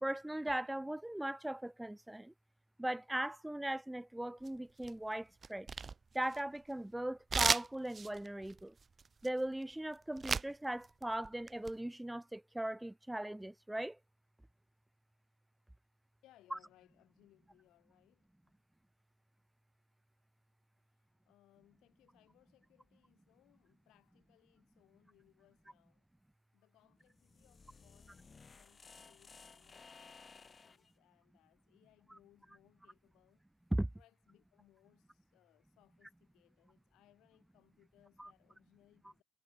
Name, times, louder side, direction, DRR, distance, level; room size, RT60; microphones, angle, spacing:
voice 1, 0.0-2.3 2.8-5.7 6.1-8.7 9.2-14.0 16.5-16.6 33.7-33.9 38.2-38.3, right 1 dB, 5° right, 1.1 m, -39 dB
sound 1, 4.4-5.0 5.4-6.7 7.3-10.5 10.8-11.7, right 5 dB, 35° right, 0.4 m, -36 dB
voice 2, 16.2-18.3 20.9-26.1 26.5-33.4 33.9-39.2, left 15 dB, 90° left, 5.6 m, -70 dB
sound 2, 27.1-30.9, left 5 dB, 35° left, 6.2 m, -58 dB
cardioid pair, 90°, 0 cm